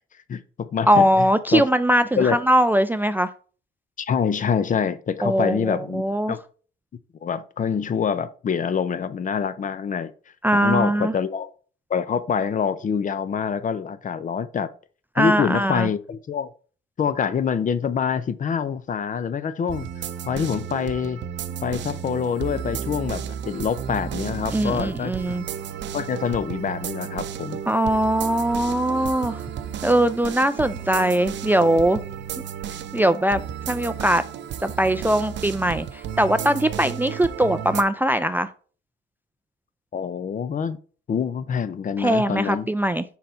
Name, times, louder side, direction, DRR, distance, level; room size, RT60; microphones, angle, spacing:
voice 1, 0.3-1.6 2.2-2.4 4.0-6.4 7.2-10.1 10.5-11.5 11.9-14.7 15.2-16.5 17.0-21.2 21.6-25.1 25.9-27.6 39.9-40.8 41.1-42.7, left 7 dB, 40° left, 0.5 m, -26 dB
voice 2, 0.9-3.3 5.2-6.3 10.4-11.1 15.2-15.9 24.5-25.4 27.7-29.4 29.8-32.0 32.9-33.4 33.7-34.2 34.6-38.5 42.0-43.0, right 1 dB, 10° right, 0.3 m, -21 dB
sound 1, 19.7-37.8, right 9 dB, 65° right, 0.6 m, -33 dB
5.5 x 4.0 x 4.3 m
cardioid pair, 90°, 20 cm